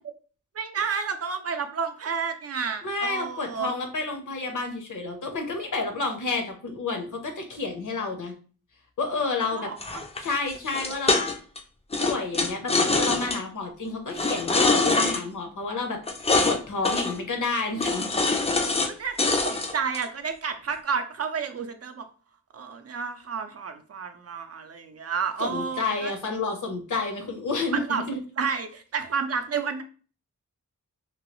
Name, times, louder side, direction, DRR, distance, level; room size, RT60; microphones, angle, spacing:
voice 1, 0.5-3.7 9.4-10.0 18.8-22.0 22.5-26.1 27.9-28.0 28.4-29.8, right 6 dB, 50° right, 7 dB, 0.4 m, -31 dB
voice 2, 2.8-8.3 9.0-9.7 10.2-11.2 12.0-16.0 16.4-18.1 25.4-28.2, left 3 dB, 70° left, 4 dB, 0.8 m, -30 dB
sound 1, 9.8-11.6 11.9-13.4 14.1-15.2 16.1-16.6 16.8-17.2 17.8-18.9 19.2-20.0, left 3 dB, 20° left, 0.4 m, -24 dB
3.0 x 2.3 x 3.0 m, 0.39 s
wide cardioid pair, 130°, 32 cm